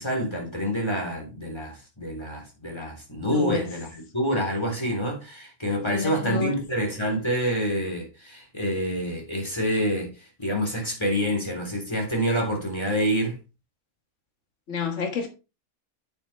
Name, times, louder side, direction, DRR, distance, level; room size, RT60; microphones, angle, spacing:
voice 1, 0.0-13.4, equal, 15° left, 3.6 m, -27 dB
voice 2, 3.3-3.6 5.7-6.5 14.7-15.3, left 5 dB, 55° left, 1.9 m, -29 dB
8.9 x 7.8 x 3.3 m
omnidirectional pair, 1.6 m